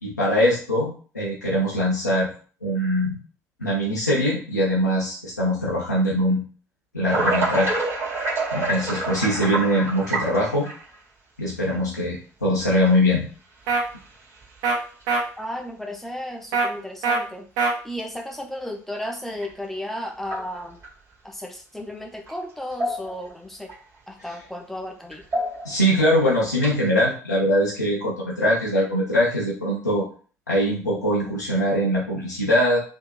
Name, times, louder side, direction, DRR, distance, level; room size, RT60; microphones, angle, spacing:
voice 1, 0.0-2.3 2.6-3.2 3.6-6.4 6.9-7.8 8.5-10.7 11.4-13.3 24.2-24.3 25.6-30.1 30.5-32.8, equal, 90° left, -6 dB, 0.7 m, -22 dB
sound 1, 7.1-10.9 11.7-11.8 12.9-13.0 13.7-14.0 14.4-14.5 15.0-15.2 16.5-16.6 19.4-19.5 20.2-20.9 22.3-22.4 22.7-23.3 23.7-23.8 25.1-25.8 26.5-26.9, right 2 dB, 30° right, 1.7 m, -27 dB
sound 2, 13.7-13.8 14.6-14.8 15.1-15.2 16.5-16.7 17.0-17.2 17.6-17.7, right 4 dB, 60° right, 0.6 m, -21 dB
voice 2, 15.4-17.5 17.8-20.8 21.2-23.7 24.1-25.3, left 1 dB, 5° left, 4 dB, 0.6 m, -34 dB
3.5 x 2.8 x 2.3 m, 0.40 s
figure-of-eight pair, 60°, 9 cm